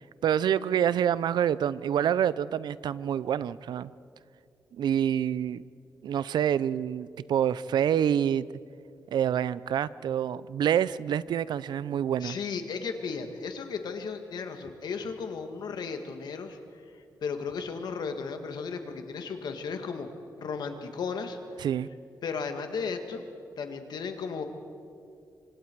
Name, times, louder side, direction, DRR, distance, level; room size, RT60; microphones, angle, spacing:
voice 1, 0.2-3.9 4.7-5.6 6.0-8.5 9.1-12.4 21.6-21.9, right 9 dB, 90° right, 18 dB, 0.5 m, -27 dB
voice 2, 12.2-16.6 17.2-20.1 20.4-21.4 22.2-23.2 23.6-24.4, left 5 dB, 75° left, 6 dB, 1.9 m, -35 dB
26.5 x 25.0 x 4.7 m, 2.4 s
wide cardioid pair, 165°, 7 cm